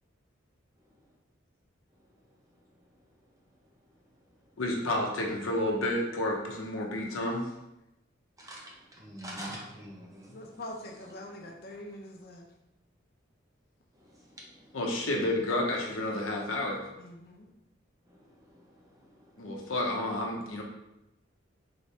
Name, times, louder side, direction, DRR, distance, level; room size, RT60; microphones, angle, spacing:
voice 1, 4.6-7.5 14.7-16.8 19.4-20.6, left 1 dB, 85° left, 0 dB, 0.8 m, -30 dB
voice 2, 8.4-10.4 14.0-14.5 18.1-19.7, right 1 dB, 15° right, -3 dB, 0.8 m, -46 dB
voice 3, 10.3-12.5 17.0-17.5, left 1 dB, 50° left, 1 dB, 0.6 m, -44 dB
3.9 x 3.3 x 2.8 m, 0.90 s
head